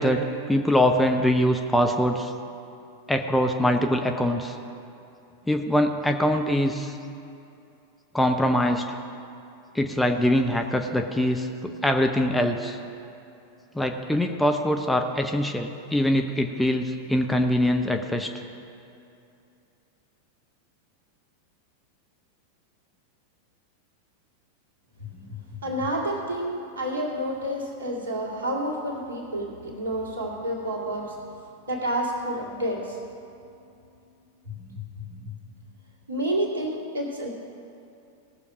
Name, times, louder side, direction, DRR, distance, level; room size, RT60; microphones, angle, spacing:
voice 1, 0.0-2.3 3.1-4.6 5.5-7.0 8.1-9.0 9.7-12.8 13.7-18.3, equal, 5° left, 4 dB, 0.7 m, -23 dB
voice 2, 25.0-31.3 31.7-33.0 34.5-35.3 36.1-37.3, right 1 dB, 65° right, -1 dB, 2.3 m, -30 dB
18.5 x 6.9 x 4.9 m, 2.7 s
figure-of-eight pair, 90°, 0 cm